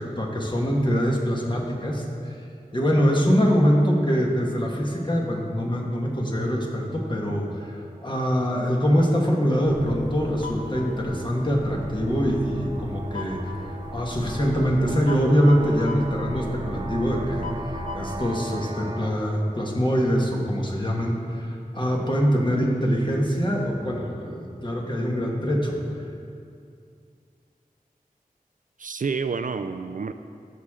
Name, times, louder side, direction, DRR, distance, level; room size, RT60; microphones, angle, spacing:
voice 1, 0.0-2.3 2.7-13.4 13.9-25.8, equal, 30° left, -1 dB, 1.5 m, -24 dB
sound 1, 2.2-2.5 2.8-19.1, right 2 dB, 25° right, 0.7 m, -42 dB
sound 2, 9.6-18.2, left 2 dB, 60° left, 1.1 m, -37 dB
voice 2, 28.8-30.1, right 5 dB, 60° right, 9 dB, 0.4 m, -29 dB
14.0 x 6.4 x 3.7 m, 2.4 s
wide cardioid pair, 65°, 15 cm